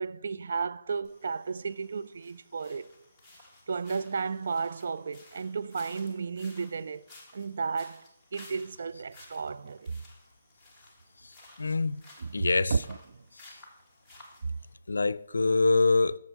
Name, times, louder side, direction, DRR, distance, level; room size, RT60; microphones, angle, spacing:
voice 1, 0.0-2.9 3.7-7.0 7.3-9.9 12.2-13.2, right 5 dB, 60° right, 0.3 m, -33 dB
sound 1, 1.0-14.7, left 2 dB, 5° left, 1.7 m, -55 dB
voice 2, 11.6-12.0 12.3-12.7 14.9-16.2, left 3 dB, 90° left, 0.3 m, -24 dB
7.2 x 7.1 x 4.5 m
hypercardioid pair, 160°, 0 cm